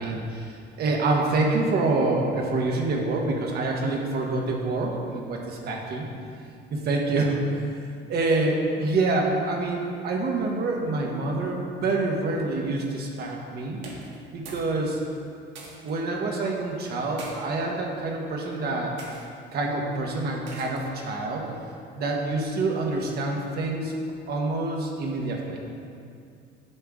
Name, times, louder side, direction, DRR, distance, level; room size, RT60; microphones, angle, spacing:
voice 1, 0.0-6.1 6.7-7.6 8.1-13.8 14.3-15.0 15.8-18.9 19.5-21.5 22.0-23.9 24.3-25.6, right 2 dB, 60° right, 0 dB, 1.4 m, -26 dB
sound 1, 13.8-14.7 15.0-16.0 16.9-17.4 18.1-18.4 19.0-19.2 20.5-20.9, right 3 dB, 85° right, 1.7 m, -44 dB
9.7 x 6.6 x 3.7 m, 2.5 s
cardioid pair, 130°, 19 cm